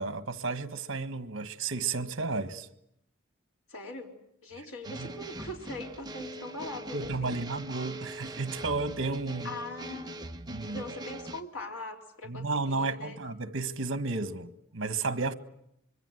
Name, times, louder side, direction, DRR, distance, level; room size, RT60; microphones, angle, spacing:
voice 1, 0.0-2.7 5.0-5.1 6.9-9.5 10.5-10.8 12.3-15.3, right 3 dB, 65° right, 1.6 m, -32 dB
voice 2, 3.7-4.1 4.4-7.4 9.4-10.2 10.6-13.2, left 2 dB, 85° left, 3.8 m, -41 dB
sound 1, 4.8-11.4, right 1 dB, 20° right, 1.0 m, -42 dB
25.5 x 23.0 x 8.0 m
head